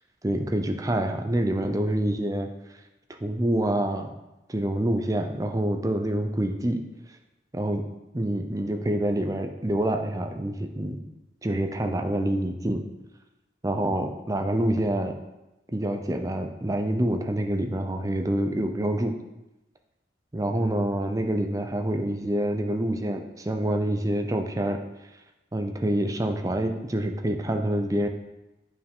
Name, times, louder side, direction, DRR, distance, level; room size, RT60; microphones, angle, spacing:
voice 1, 0.2-2.5 3.2-4.1 4.5-6.8 7.5-7.8 8.1-11.0 11.4-12.8 13.6-15.2 15.7-19.1 20.3-24.8 25.5-28.1, right 1 dB, 20° right, 5 dB, 0.5 m, -26 dB
8.7 x 4.7 x 3.6 m, 0.97 s
head